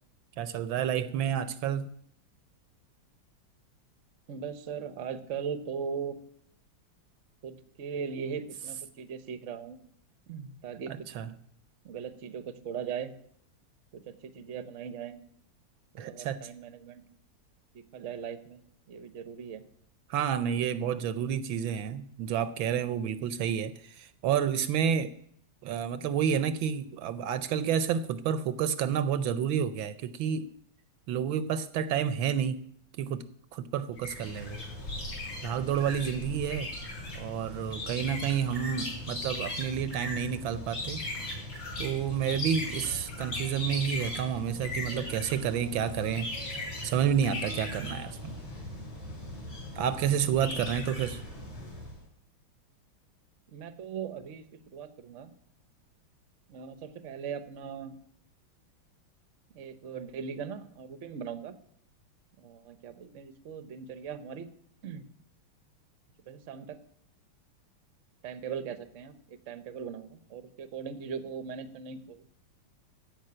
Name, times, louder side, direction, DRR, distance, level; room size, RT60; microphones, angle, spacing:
voice 1, 0.4-1.9 11.1-11.3 16.0-16.4 20.1-25.1 25.6-30.5 31.1-32.6 33.0-33.2 33.5-34.6 35.4-36.7 37.1-41.0 41.8-46.5 46.8-48.4 49.8-51.2, right 8 dB, 75° right, 1.4 m, -30 dB
voice 2, 4.3-6.2 7.4-9.8 10.3-11.0 11.8-13.1 13.9-15.2 15.9-17.0 17.7-18.6 18.9-19.7 53.5-55.3 56.5-58.0 59.5-61.6 62.4-64.5 64.8-65.1 66.3-66.8 68.2-72.4, right 7 dB, 50° right, 1.0 m, -39 dB
sound 1, 34.0-52.0, left 1 dB, 70° left, 5.2 m, -38 dB
15.5 x 5.5 x 8.7 m
omnidirectional pair, 2.3 m